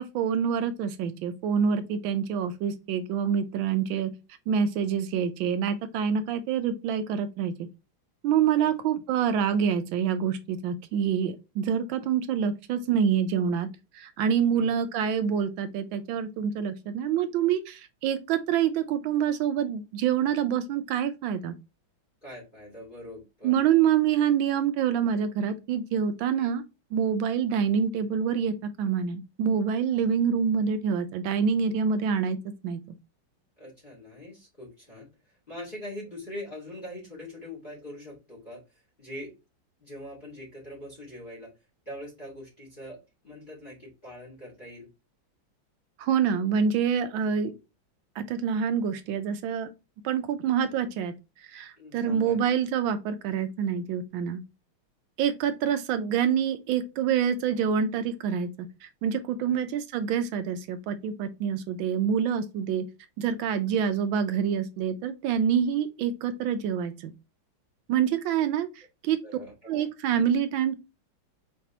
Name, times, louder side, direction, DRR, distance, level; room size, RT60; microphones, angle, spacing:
voice 1, 0.0-4.1 4.5-7.5 8.2-13.7 13.9-21.5 23.4-26.6 26.9-32.4 32.6-32.8 46.0-47.5 48.2-49.7 50.0-51.1 51.5-54.4 55.2-58.5 58.8-62.8 63.2-67.1 67.9-68.7 69.0-69.2 69.7-70.8, right 7 dB, 75° right, 1.3 m, -26 dB
voice 2, 22.2-23.5 26.3-26.5 33.6-38.6 39.0-39.3 39.8-41.5 41.9-44.9 51.8-52.5 59.4-59.6 63.7-63.8 69.2-69.9, left 1 dB, 25° left, 2.0 m, -43 dB
4.8 x 3.4 x 2.7 m
omnidirectional pair, 2.2 m